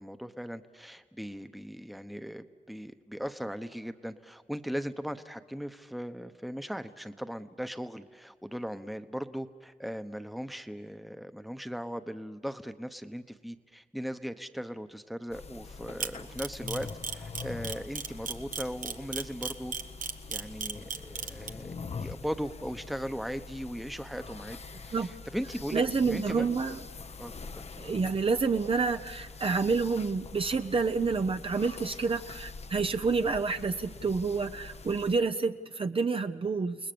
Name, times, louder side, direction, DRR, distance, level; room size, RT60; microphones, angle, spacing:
voice 1, 0.0-19.7 20.3-24.6 24.8-25.8 26.1-26.5 27.2-27.6, equal, ahead, 9 dB, 1.0 m, -38 dB
sound 1, 15.3-35.2, left 4 dB, 50° left, 0.9 m, -44 dB
Camera, 16.0-21.5, right 5 dB, 80° right, 1.2 m, -34 dB
voice 2, 25.7-26.8 27.8-36.8, right 4 dB, 45° right, 8 dB, 0.7 m, -28 dB
29.5 x 20.0 x 7.0 m, 1.5 s
wide cardioid pair, 80°, 13 cm